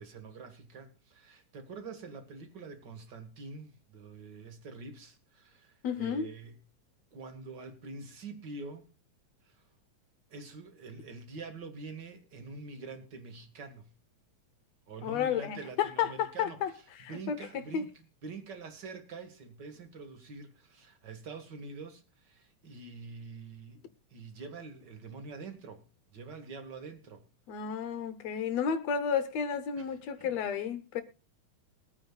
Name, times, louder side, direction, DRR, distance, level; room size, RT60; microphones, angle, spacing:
voice 1, 0.0-6.6 7.1-8.8 9.4-9.6 10.3-13.9 14.9-16.6 17.1-17.9 18.2-23.8 24.1-25.8 26.1-27.2 29.8-29.9 30.2-30.3, right 4 dB, 40° right, 1.8 m, -45 dB
voice 2, 5.8-6.3 15.0-17.4 17.7-17.8 27.5-31.0, left 7 dB, 70° left, 1.9 m, -32 dB
22.0 x 9.1 x 2.3 m
omnidirectional pair, 3.5 m